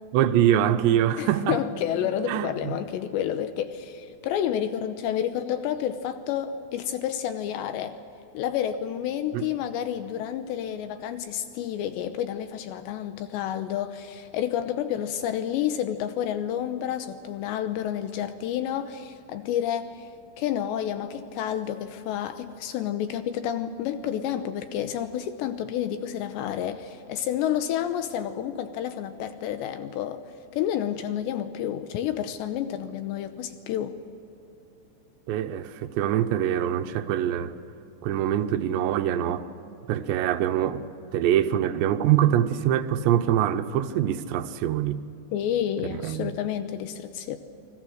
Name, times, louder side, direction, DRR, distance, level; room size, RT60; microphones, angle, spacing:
voice 1, 0.1-1.6 2.3-2.8 9.3-9.5 35.3-37.6 38.0-39.5 39.9-40.8 41.1-45.0 45.8-46.3, right 11 dB, 80° right, 3.0 m, -24 dB
voice 2, 1.2-8.0 8.3-20.1 20.4-30.2 30.5-34.0 45.3-47.4, left 10 dB, 80° left, 3.1 m, -30 dB
30.0 x 23.0 x 6.5 m
omnidirectional pair, 5.1 m